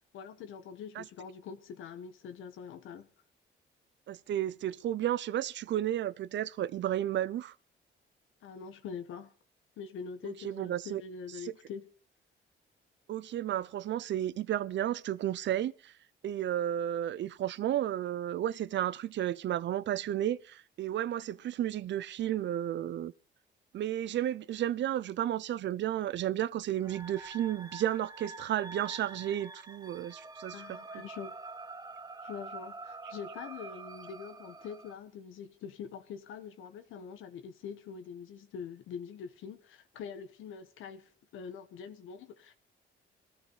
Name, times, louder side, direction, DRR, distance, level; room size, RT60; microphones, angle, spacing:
voice 1, 0.1-3.1 8.4-9.3 9.8-11.9 30.5-31.3 32.2-42.6, left 6 dB, 85° left, 1.4 m, -44 dB
voice 2, 4.1-7.5 10.2-11.0 11.4-11.5 13.1-15.9 16.2-23.1 23.7-30.8, right 11 dB, 65° right, 0.7 m, -33 dB
sound 1, 26.8-34.9, right 3 dB, 20° right, 0.7 m, -46 dB
17.0 x 13.0 x 5.5 m
cardioid pair, 90°, 20 cm